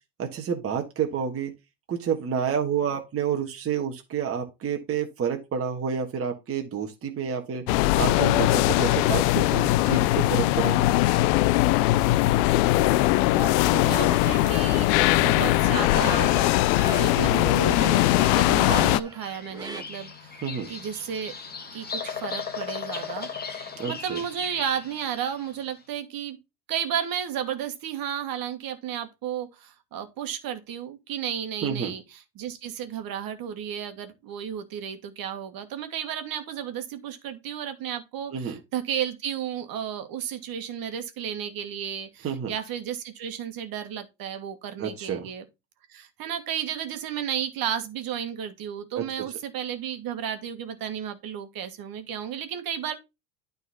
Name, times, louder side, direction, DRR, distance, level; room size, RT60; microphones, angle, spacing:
voice 1, 0.2-1.5 1.9-7.6 8.0-10.8 17.1-17.5 20.4-20.7 23.8-24.2 31.6-31.9 38.3-38.6 42.2-42.5 44.8-45.3 49.0-49.1, right 7 dB, 30° right, 1.5 m, -29 dB
sound 1, 7.7-19.0, left 17 dB, 70° left, 0.6 m, -21 dB
sound 2, 8.3-9.2 10.0-11.2 11.5-19.8, right 2 dB, 10° right, 2.2 m, -39 dB
voice 2, 12.0-12.5 13.7-14.9 15.2-16.4 17.0-20.4 20.7-21.3 21.7-23.3 23.9-26.4 26.7-45.4 45.9-53.0, right 9 dB, 45° right, 1.8 m, -33 dB
Bird vocalization bird call bird song, 19.1-25.6, left 6 dB, 20° left, 1.8 m, -37 dB
9.2 x 4.0 x 5.5 m
supercardioid pair, 105°, 48 cm